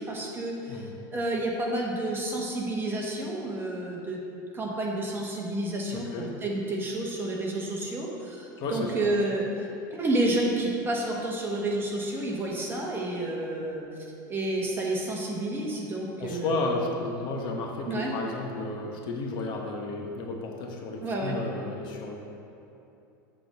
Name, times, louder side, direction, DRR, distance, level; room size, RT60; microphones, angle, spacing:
voice 1, 0.0-4.2 4.5-13.8 14.3-16.8 17.9-18.2 21.0-21.4, right 1 dB, 20° right, -2 dB, 1.3 m, -30 dB
voice 2, 5.9-6.3 8.6-9.1 16.2-22.2, left 3 dB, 50° left, 1 dB, 1.0 m, -33 dB
7.4 x 3.8 x 6.4 m, 2.8 s
supercardioid pair, 115°, 10 cm